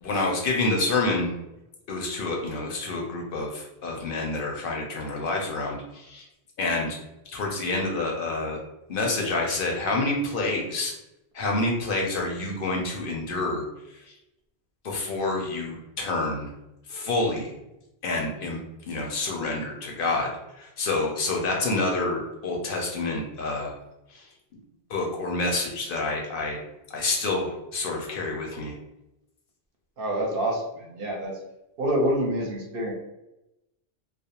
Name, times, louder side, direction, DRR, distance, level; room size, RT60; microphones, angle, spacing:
voice 1, 0.0-1.3 1.9-6.3 6.6-7.0 7.3-8.6 8.9-10.9 11.3-13.6 13.9-14.1 14.8-16.5 16.9-17.6 18.0-18.6 18.9-23.7 24.1-24.3 24.9-26.6 26.9-28.7, left 2 dB, 65° left, 0 dB, 0.7 m, -28 dB
voice 2, 30.0-31.4 31.8-32.9, right 1 dB, 65° right, 0 dB, 0.7 m, -27 dB
2.3 x 2.0 x 2.8 m, 0.91 s
omnidirectional pair, 1.1 m